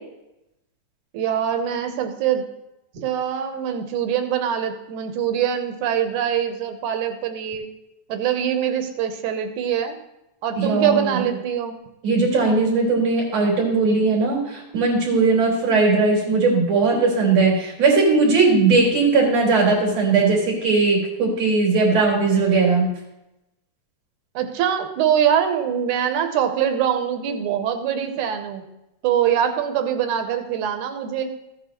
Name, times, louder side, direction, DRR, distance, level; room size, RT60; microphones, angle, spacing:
voice 1, 1.1-2.4 3.0-7.7 8.1-10.0 10.4-11.8 24.4-28.6 29.0-31.3, right 9 dB, 85° right, 7 dB, 2.3 m, -23 dB
voice 2, 10.6-11.3 12.0-22.9, right 3 dB, 60° right, -4 dB, 4.1 m, -19 dB
15.0 x 8.7 x 3.0 m, 0.91 s
omnidirectional pair, 3.4 m